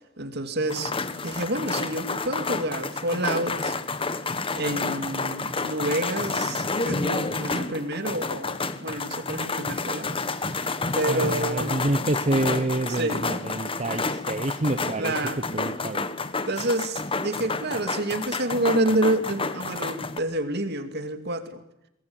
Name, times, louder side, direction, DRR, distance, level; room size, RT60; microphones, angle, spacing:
voice 1, 0.2-0.9 1.2-3.8 4.5-10.2 10.9-11.8 12.9-13.2 15.0-15.4 16.5-21.6, right 1 dB, 55° right, 8 dB, 2.7 m, -28 dB
sound 1, 0.7-20.2, left 3 dB, 25° left, 1.4 m, -30 dB
voice 2, 11.1-15.1 15.5-16.1, right 2 dB, 35° right, 10 dB, 1.0 m, -27 dB
25.0 x 21.5 x 9.0 m, 0.84 s
head